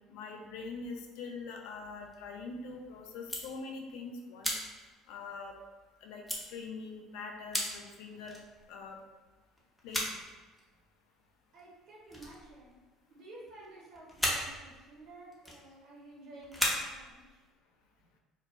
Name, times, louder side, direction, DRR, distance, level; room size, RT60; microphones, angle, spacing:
voice 1, 0.1-4.5 5.1-5.6 6.0-8.4 8.7-9.0 9.8-10.2, left 4 dB, 65° left, 2 dB, 0.3 m, -43 dB
sound 1, 1.8-2.7 3.1-4.0 4.4-5.9 6.3-6.5 7.1-7.2 7.5-7.8 8.2-9.0 9.6-10.3 10.5-11.0 11.6-11.8 12.0-13.1 13.5-13.7 13.9-16.1 16.4-17.5, equal, 5° left, 0.7 m, -36 dB
voice 2, 11.5-12.8 13.1-17.4, right 2 dB, 60° right, -6 dB, 0.9 m, -52 dB
2.2 x 2.1 x 3.1 m, 1.2 s
hypercardioid pair, 60°, 0 cm